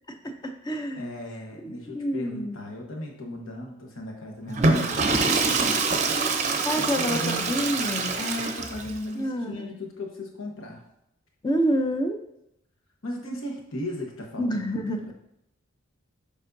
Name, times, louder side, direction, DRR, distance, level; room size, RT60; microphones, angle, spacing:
voice 1, 0.1-1.1 1.6-2.6 6.6-8.1 9.1-9.7 11.4-12.2 14.4-15.1, equal, 20° left, 6 dB, 0.5 m, -28 dB
voice 2, 1.0-5.8 6.7-7.6 8.1-10.8 13.0-15.1, left 1 dB, 75° left, 1 dB, 1.2 m, -36 dB
Water / Toilet flush, 4.5-9.0, right 3 dB, 35° right, 0.6 m, -25 dB
7.2 x 5.2 x 2.6 m, 0.81 s
head